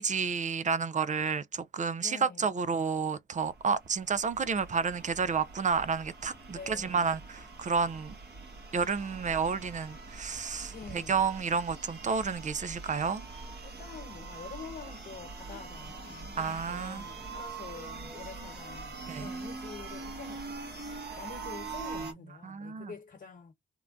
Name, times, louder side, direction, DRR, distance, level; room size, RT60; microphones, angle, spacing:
voice 1, 0.0-8.1 8.7-13.2 16.4-17.0 19.1-19.3 22.4-22.9, right 5 dB, 35° right, 0.5 m, -30 dB
voice 2, 2.0-2.6 6.5-7.2 10.7-11.2 13.6-23.5, left 5 dB, 50° left, 1.2 m, -47 dB
sound 1, 3.4-22.1, right 3 dB, 55° right, 1.4 m, -43 dB
3.6 x 2.1 x 2.4 m
supercardioid pair, 50°, 20 cm